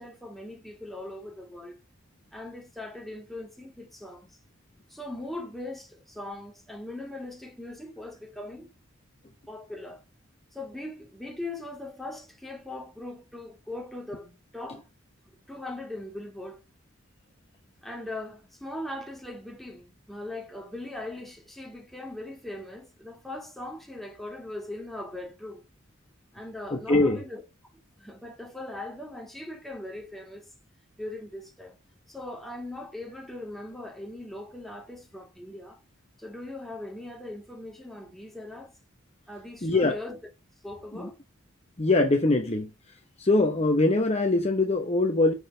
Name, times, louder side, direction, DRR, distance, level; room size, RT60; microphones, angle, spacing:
voice 1, 0.0-1.8 2.3-4.3 4.9-8.7 9.5-10.0 10.5-14.8 15.5-16.6 17.8-25.7 26.3-27.4 28.0-30.5 31.0-31.8 32.1-35.8 36.2-38.7 39.3-40.2 40.6-41.2, left 1 dB, ahead, 2.1 m, -40 dB
voice 2, 26.7-27.2 39.6-40.0 40.9-41.1 41.8-42.7 43.2-45.3, left 2 dB, 30° left, 1.0 m, -23 dB
6.3 x 5.9 x 6.6 m
head